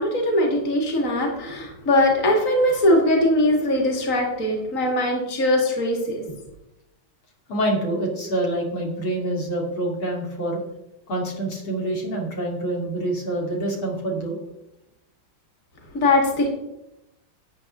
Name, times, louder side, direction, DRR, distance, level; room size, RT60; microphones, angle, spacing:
voice 1, 0.0-6.2 15.9-16.5, left 1 dB, 40° left, 1 dB, 2.4 m, -21 dB
voice 2, 7.5-10.6 11.1-14.4, right 1 dB, 75° left, -1 dB, 3.2 m, -26 dB
12.5 x 8.8 x 3.7 m, 0.90 s
omnidirectional pair, 2.3 m